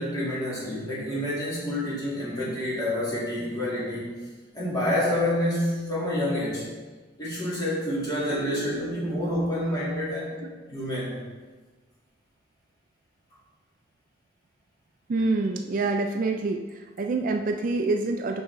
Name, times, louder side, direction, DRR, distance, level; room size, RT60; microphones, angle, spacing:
voice 1, 0.0-4.2 4.5-6.7 7.2-10.4 10.7-11.2, left 1 dB, 20° left, -8 dB, 2.1 m, -28 dB
voice 2, 8.3-9.9 10.4-10.5 15.1-18.4, right 3 dB, 40° right, 4 dB, 0.3 m, -28 dB
7.0 x 5.5 x 3.4 m, 1.3 s
head